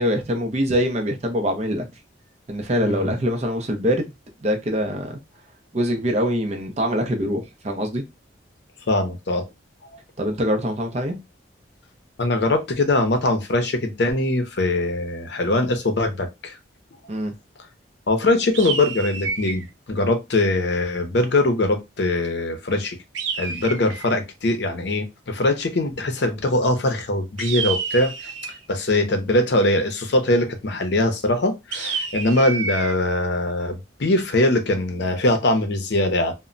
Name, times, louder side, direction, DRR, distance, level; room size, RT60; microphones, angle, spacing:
voice 1, 0.0-1.9 2.5-4.1 4.4-5.2 5.7-8.0 10.2-11.2 17.1-17.3, equal, 35° right, 0.5 m, -24 dB
voice 2, 8.9-9.4 12.2-16.5 18.1-23.0 23.4-28.3 28.7-36.3, left 2 dB, 60° left, 0.6 m, -22 dB
sound 1, 18.5-19.7 23.1-24.2 27.4-28.6 31.7-32.9, right 5 dB, 85° right, 0.5 m, -29 dB
2.1 x 2.1 x 3.7 m
head